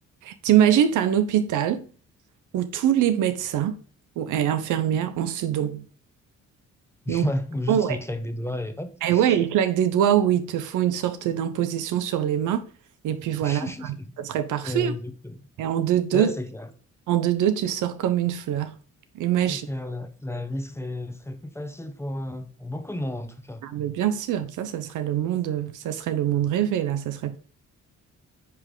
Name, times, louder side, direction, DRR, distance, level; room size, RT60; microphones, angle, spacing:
voice 1, 0.2-1.8 2.5-3.8 4.2-5.8 7.1-7.2 7.7-8.0 9.0-12.6 13.0-14.9 15.6-16.3 17.1-18.7 19.1-19.7 23.6-27.4, right 10 dB, 85° right, 0.8 m, -23 dB
voice 2, 7.0-9.4 13.4-14.1 14.6-15.4 16.1-16.7 19.5-23.6, left 1 dB, 10° left, 0.9 m, -32 dB
9.8 x 3.3 x 3.8 m
cardioid pair, 90°, 30 cm